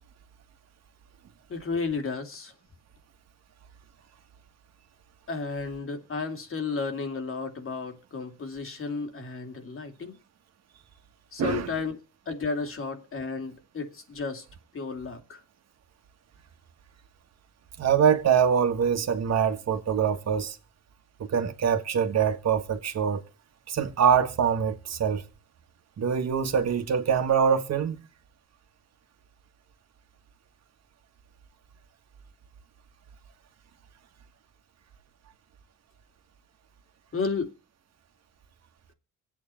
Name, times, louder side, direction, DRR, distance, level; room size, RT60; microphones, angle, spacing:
voice 1, 1.5-2.5 5.3-10.2 11.3-12.0 12.3-14.4 14.7-15.4 37.1-37.5, left 4 dB, 45° left, 2.7 m, -33 dB
voice 2, 11.4-11.7 17.8-20.6 21.2-23.2 23.7-25.2 26.0-28.0, right 7 dB, 60° right, 1.7 m, -24 dB
25.5 x 8.7 x 4.4 m
cardioid pair, 90°, 30 cm